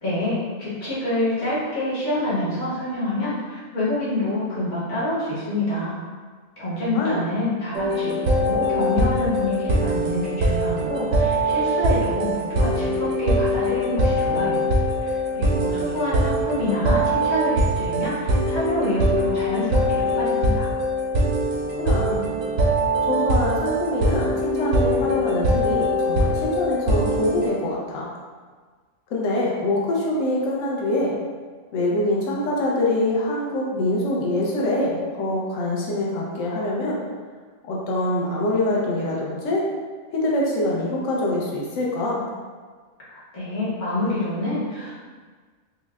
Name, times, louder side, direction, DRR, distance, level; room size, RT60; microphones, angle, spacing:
voice 1, 0.0-5.9 6.6-14.7 15.0-20.6 43.1-44.9, left 1 dB, 55° left, -10 dB, 1.5 m, -27 dB
voice 2, 6.9-7.3 21.7-22.3 23.0-28.1 29.1-31.2 31.7-37.0 37.7-39.6 40.1-42.2, left 1 dB, 70° left, -4 dB, 1.1 m, -24 dB
sound 1, 7.7-27.5, equal, 75° right, 1.1 m, -22 dB
5.2 x 2.1 x 2.3 m, 1.5 s
omnidirectional pair, 1.4 m